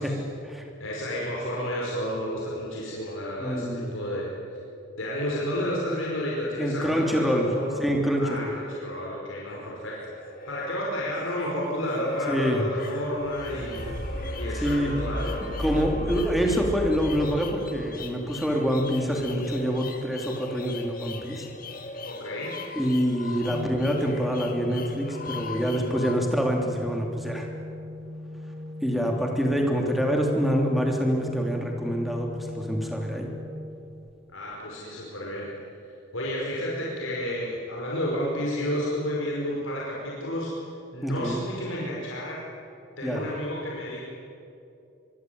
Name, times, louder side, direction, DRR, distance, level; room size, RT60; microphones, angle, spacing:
voice 1, 0.0-0.6 3.4-3.9 6.6-7.5 7.8-8.5 12.3-12.6 14.6-14.9 15.6-21.5 22.7-27.5 28.8-33.3 41.0-41.4 43.0-43.2, equal, ahead, 1 dB, 3.1 m, -26 dB
voice 2, 0.8-4.3 5.0-7.8 8.2-10.0 10.5-13.8 14.4-15.4 22.0-22.6 34.3-35.5 35.9-40.5 40.9-42.4 43.0-44.0, equal, 75° left, -4 dB, 5.2 m, -31 dB
sound 1, 9.2-26.1, left 3 dB, 45° left, 2.1 m, -40 dB
sound 2, 13.1-21.0 21.6-21.7, equal, 50° right, 7.1 m, -35 dB
Organ, 23.5-34.4, left 1 dB, 30° right, 1.3 m, -39 dB
23.5 x 23.5 x 9.5 m, 2.6 s
head